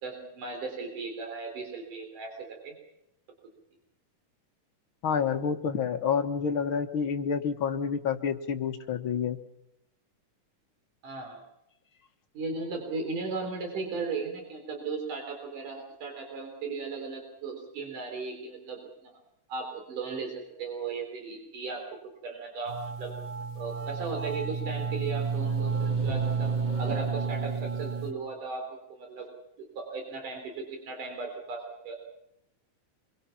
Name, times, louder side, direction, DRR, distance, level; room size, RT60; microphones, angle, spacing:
voice 1, 0.0-2.7 11.0-11.4 12.3-19.1 19.5-22.0 22.2-23.1 23.6-26.5 26.8-29.3 29.8-32.0, right 4 dB, 80° right, 3 dB, 5.2 m, -36 dB
voice 2, 5.0-9.4, left 6 dB, 50° left, 7 dB, 1.8 m, -28 dB
sound 1, 22.7-28.1, right 5 dB, 35° right, 3.5 m, -31 dB
27.0 x 23.0 x 5.8 m, 0.81 s
omnidirectional pair, 3.6 m